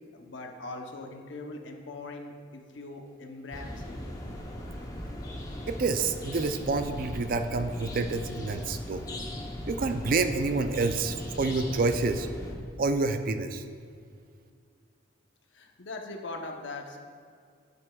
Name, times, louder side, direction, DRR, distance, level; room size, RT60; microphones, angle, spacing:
voice 1, 0.1-3.9 15.5-17.0, left 2 dB, 75° left, 3 dB, 0.8 m, -41 dB
sound 1, 3.5-12.5, left 1 dB, 20° left, 0.8 m, -38 dB
voice 2, 5.7-9.0 9.7-12.3 12.8-13.6, right 3 dB, 50° right, 9 dB, 0.4 m, -28 dB
9.2 x 7.7 x 2.3 m, 2.2 s
head